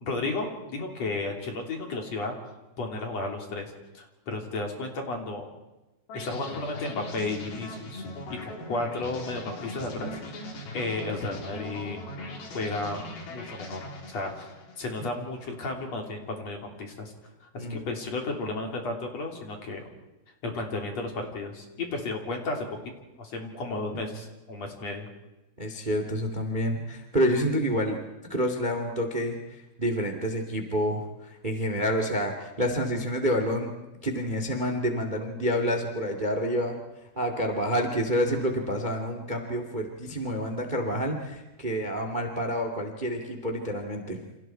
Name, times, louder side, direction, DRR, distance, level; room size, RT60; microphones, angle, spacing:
voice 1, 0.0-2.4 2.8-5.5 6.1-8.0 8.3-12.0 12.5-13.8 14.1-17.1 17.5-19.9 20.4-22.7 23.2-25.1, left 2 dB, 45° left, 2 dB, 4.2 m, -33 dB
sound 1, 6.1-15.1, left 1 dB, 80° left, 5.7 m, -40 dB
voice 2, 25.6-28.0 28.3-33.7 34.0-36.8 37.2-44.2, equal, 15° right, 5 dB, 1.9 m, -28 dB
29.5 x 28.0 x 4.6 m, 1.0 s
omnidirectional pair, 4.3 m